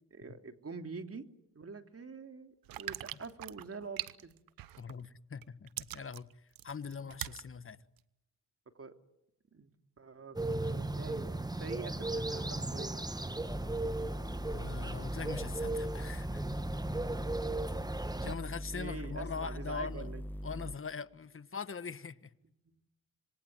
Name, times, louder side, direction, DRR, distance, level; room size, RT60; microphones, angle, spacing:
voice 1, 0.1-1.3 1.5-4.3 7.0-7.1 8.7-8.9 9.5-9.7 10.0-10.4 10.6-13.0 18.2-18.5 18.7-20.2 22.7-22.8, right 4 dB, 40° right, 2.9 m, -45 dB
sound 1, 2.6-5.1 5.4-7.5 8.0-8.1, right 14 dB, 85° right, 1.0 m, -42 dB
voice 2, 4.8-6.3 6.6-7.8 14.5-16.4 18.0-20.1 20.4-22.3, left 6 dB, 40° left, 1.5 m, -42 dB
sound 2, 10.4-18.4, right 2 dB, 10° right, 1.4 m, -36 dB
sound 3, 13.5-20.8, equal, 5° left, 1.4 m, -41 dB
27.0 x 23.5 x 9.3 m
supercardioid pair, 50°, 34 cm